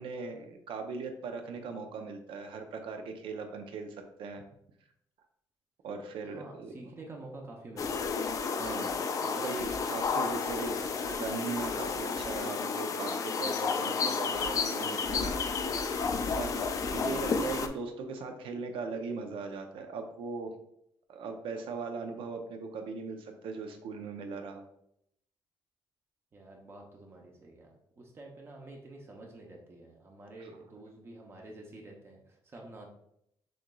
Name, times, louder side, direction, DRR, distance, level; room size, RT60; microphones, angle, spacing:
voice 1, 0.0-4.4 5.8-6.9 8.6-15.3 16.3-20.5 21.1-24.6 30.4-30.5, right 4 dB, 80° right, 6 dB, 0.6 m, -39 dB
voice 2, 6.2-8.1 26.3-32.9, right 2 dB, 30° right, 1 dB, 0.7 m, -49 dB
sound 1, 7.8-17.7, left 5 dB, 40° left, 0.3 m, -32 dB
6.2 x 3.1 x 2.3 m, 0.75 s
cardioid pair, 170°, 9 cm